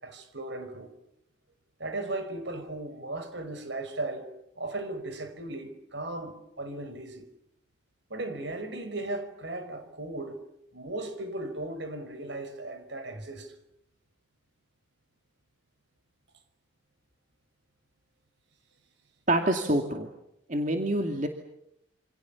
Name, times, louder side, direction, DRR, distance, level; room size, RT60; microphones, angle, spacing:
voice 1, 0.0-0.9 1.8-4.3 4.6-7.3 8.1-10.4 10.7-13.5, right 2 dB, 65° right, 5.4 m, -36 dB
voice 2, 19.3-20.1 20.5-21.3, right 1 dB, 40° right, 2.5 m, -26 dB
28.5 x 27.5 x 7.3 m
head